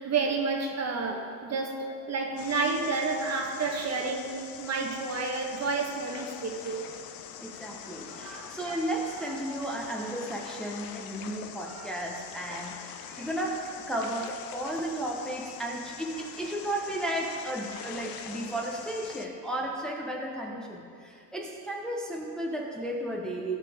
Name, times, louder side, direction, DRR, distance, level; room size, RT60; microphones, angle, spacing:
voice 1, 0.0-6.9 8.1-8.8 9.5-9.6 11.7-11.8 13.1-13.3 18.3-18.4, right 4 dB, 35° right, 3 dB, 1.2 m, -31 dB
sound 1, 2.4-19.3, left 9 dB, 50° left, 0.8 m, -44 dB
voice 2, 7.4-23.6, right 1 dB, ahead, -1 dB, 1.0 m, -34 dB
15.5 x 6.7 x 3.6 m, 2.3 s
supercardioid pair, 105°, 45 cm